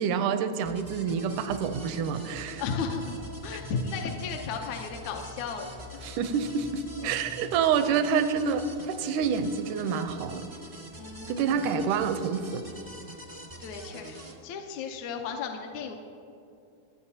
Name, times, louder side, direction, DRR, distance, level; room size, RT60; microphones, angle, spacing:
voice 1, 0.0-2.6 6.0-10.5 11.3-12.7, right 6 dB, 85° right, 9 dB, 2.1 m, -28 dB
sound 1, 0.6-14.4, equal, 30° right, 0.6 m, -44 dB
voice 2, 2.6-6.0 7.0-7.1 11.0-11.6 13.6-16.0, left 5 dB, 75° left, 2 dB, 2.1 m, -35 dB
28.0 x 9.4 x 2.8 m, 2.6 s
omnidirectional pair, 3.5 m